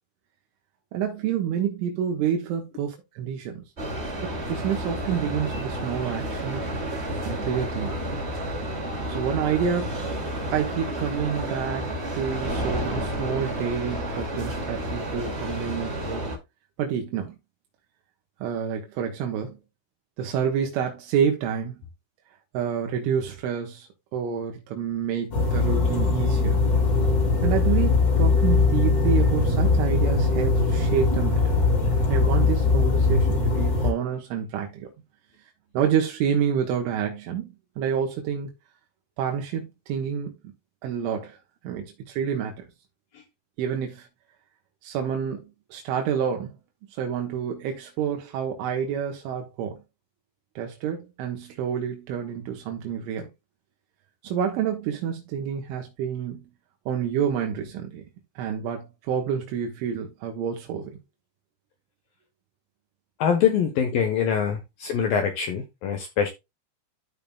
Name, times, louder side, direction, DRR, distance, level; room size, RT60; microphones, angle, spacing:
voice 1, 0.9-3.6 4.2-6.6 7.3-8.0 9.1-10.0 10.5-11.9 12.1-16.2 16.8-17.4 18.4-19.6 20.2-21.8 22.5-26.6 27.4-31.6 32.1-34.9 35.7-38.5 39.2-40.3 40.8-41.4 41.6-42.7 43.6-44.1 44.8-45.5 45.7-46.5 46.9-49.8 50.6-53.3 54.2-56.5 56.9-58.0 58.4-61.0, right 8 dB, 85° right, 3.8 m, -28 dB
sound 1, 3.8-16.4, right 1 dB, 50° right, 0.7 m, -31 dB
sound 2, 25.3-33.9, left 3 dB, 30° left, 2.9 m, -21 dB
voice 2, 63.2-66.3, left 7 dB, 75° left, 2.2 m, -24 dB
13.5 x 5.5 x 2.2 m
omnidirectional pair, 5.4 m